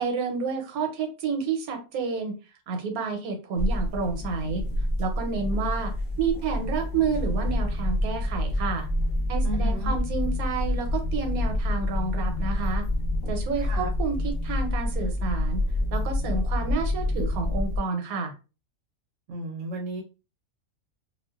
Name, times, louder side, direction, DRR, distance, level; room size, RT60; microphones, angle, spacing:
voice 1, 0.0-2.4 2.7-4.6 5.0-8.9 9.3-12.8 13.3-15.6 15.9-18.3, right 5 dB, 85° right, 4 dB, 1.2 m, -30 dB
sound 1, 3.6-17.8, left 1 dB, 60° left, 0.6 m, -27 dB
voice 2, 9.4-10.0 13.6-13.9 19.3-20.0, right 2 dB, 65° right, 1 dB, 0.9 m, -34 dB
2.4 x 2.2 x 2.3 m, 0.32 s
omnidirectional pair, 1.5 m